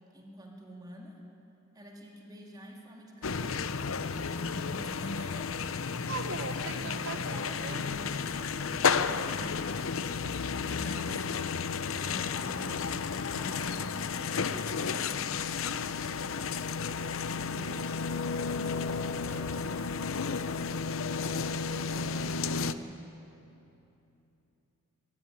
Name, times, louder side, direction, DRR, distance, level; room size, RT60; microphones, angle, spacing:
voice 1, 0.1-1.2 1.7-4.0 4.4-5.9 6.6-10.3 10.6-11.2 11.8-12.9 13.3-15.4 18.2-20.7 21.8-22.9, equal, 20° right, 0 dB, 2.7 m, -48 dB
sound 1, 3.2-22.7, left 5 dB, 75° left, 0.7 m, -32 dB
voice 2, 6.0-7.8 11.1-11.5 17.5-18.1, right 4 dB, 60° right, 8 dB, 1.0 m, -41 dB
22.0 x 17.5 x 9.9 m, 2.9 s
head